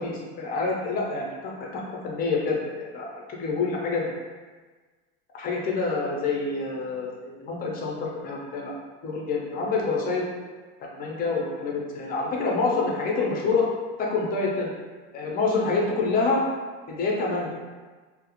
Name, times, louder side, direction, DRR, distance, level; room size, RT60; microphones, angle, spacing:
voice 1, 0.0-4.1 5.3-8.7 9.0-10.2 10.8-13.7 14.0-14.7 15.1-16.4 16.9-17.5, left 3 dB, 30° left, -2 dB, 0.5 m, -27 dB
2.3 x 2.0 x 2.8 m, 1.4 s
cardioid pair, 145°, 30 cm